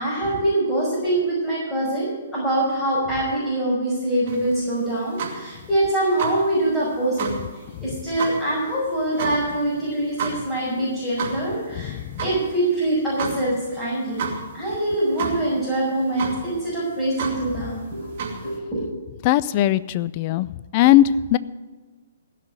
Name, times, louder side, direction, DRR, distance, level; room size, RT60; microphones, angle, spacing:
voice 1, 0.0-7.3 7.8-14.3 14.5-18.1 18.4-18.8, right 1 dB, 10° left, -10 dB, 5.6 m, -24 dB
sound 1, 4.3-18.6, right 5 dB, 45° right, 2.4 m, -33 dB
voice 2, 11.8-12.2 19.2-20.5 20.7-21.4, left 13 dB, 35° left, 17 dB, 0.4 m, -19 dB
16.0 x 5.9 x 9.1 m, 1.3 s
figure-of-eight pair, 125°, 0 cm